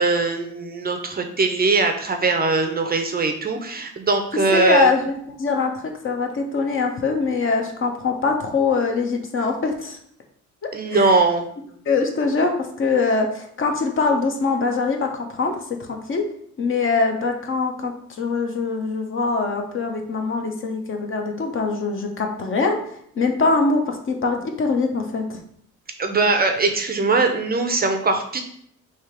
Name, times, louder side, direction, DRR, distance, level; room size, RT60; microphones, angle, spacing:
voice 1, 0.0-4.9 10.7-11.5 26.0-28.4, right 3 dB, 30° right, 6 dB, 0.5 m, -21 dB
voice 2, 4.5-5.1 5.4-10.0 10.9-11.1 11.9-12.5 12.8-15.5 15.8-16.2 16.6-22.8 23.2-25.4, left 4 dB, 45° left, 3 dB, 0.8 m, -23 dB
3.4 x 2.9 x 4.5 m, 0.66 s
cardioid pair, 90°, 30 cm